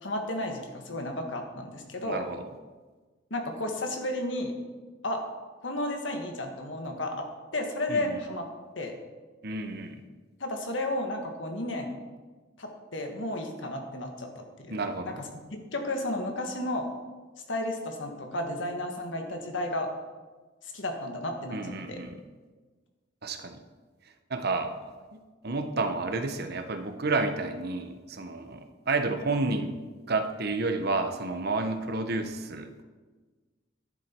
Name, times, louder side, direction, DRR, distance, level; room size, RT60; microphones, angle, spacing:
voice 1, 0.0-2.2 3.3-4.5 5.0-5.2 5.6-7.3 7.5-8.4 8.7-8.9 10.4-12.0 12.6-16.9 17.5-19.9 20.6-22.0, left 1 dB, 80° left, 4 dB, 1.7 m, -33 dB
voice 2, 2.0-2.4 7.9-8.2 9.4-10.0 14.7-15.2 21.5-22.2 23.2-23.6 24.3-24.7 25.1-29.7 30.1-32.7, right 3 dB, 60° right, 7 dB, 1.0 m, -30 dB
11.0 x 10.5 x 4.5 m, 1.3 s
head